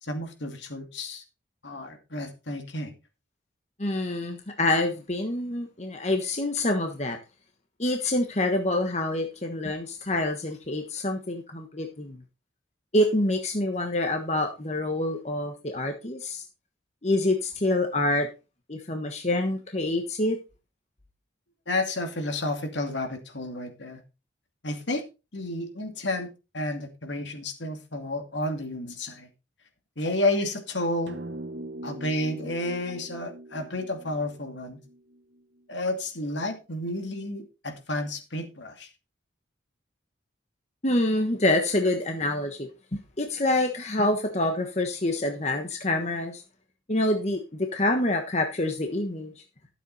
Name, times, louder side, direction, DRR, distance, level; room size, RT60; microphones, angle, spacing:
voice 1, 0.0-1.2 1.6-2.9 21.7-24.0 24.6-25.0 25.3-29.3 30.0-31.2 31.8-34.8 35.7-38.9, left 1 dB, 70° left, 5 dB, 2.5 m, -31 dB
voice 2, 3.8-7.2 7.8-12.2 12.9-16.4 17.0-18.3 18.7-20.4 40.8-42.7 43.2-46.4 46.9-49.3, left 1 dB, 35° left, 4 dB, 1.2 m, -26 dB
sound 1, 31.1-35.6, right 1 dB, 65° right, 1.5 m, -41 dB
12.5 x 7.5 x 4.2 m, 0.29 s
head